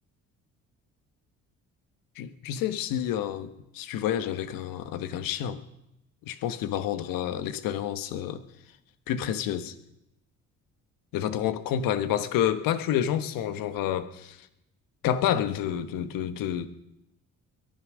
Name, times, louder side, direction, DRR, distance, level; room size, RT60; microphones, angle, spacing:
voice 1, 2.2-5.6 6.2-8.4 9.1-9.7 11.1-14.4 15.0-16.7, left 10 dB, 80° left, 1.2 m, -29 dB
21.5 x 10.5 x 6.3 m
supercardioid pair, 65°, 33 cm